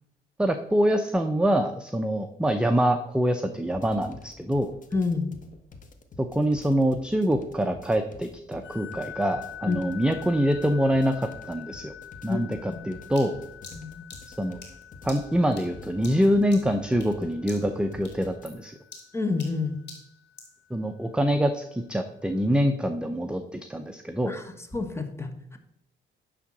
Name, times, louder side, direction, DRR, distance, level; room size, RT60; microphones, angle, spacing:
voice 1, 0.4-4.7 6.2-11.9 12.2-13.3 14.4-14.6 15.0-18.7 20.7-24.3, equal, 5° right, 7 dB, 0.5 m, -25 dB
sound 1, 3.7-18.5, left 3 dB, 40° left, 1.2 m, -47 dB
voice 2, 4.9-5.3 9.7-9.8 12.3-12.4 12.7-12.8 13.7-14.0 19.1-19.7 24.3-25.6, left 4 dB, 15° left, 6 dB, 1.2 m, -29 dB
sound 2, 8.6-20.8, left 10 dB, 80° left, 1.1 m, -46 dB
sound 3, 13.2-17.2 17.5-17.8 18.0-20.6, left 3 dB, 60° left, 2.7 m, -47 dB
9.7 x 3.7 x 6.1 m, 0.80 s
cardioid pair, 90°, 20 cm